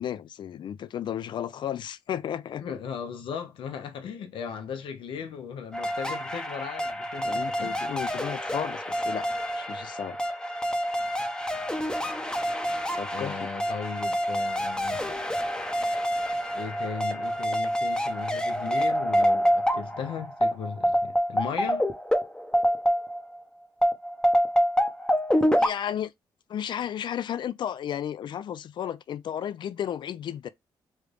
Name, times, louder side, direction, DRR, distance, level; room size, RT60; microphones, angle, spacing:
voice 1, 0.0-2.6 7.2-9.3 9.5-10.2 13.0-13.5 25.3-26.1 26.5-30.5, left 10 dB, 60° left, 0.4 m, -33 dB
voice 2, 2.6-7.8 13.1-15.0 16.5-21.9, left 7 dB, 75° left, 0.8 m, -37 dB
sound 1, 5.7-23.4 23.8-25.7, equal, 10° left, 0.7 m, -27 dB
3.3 x 2.4 x 3.3 m
cardioid pair, 75°, 9 cm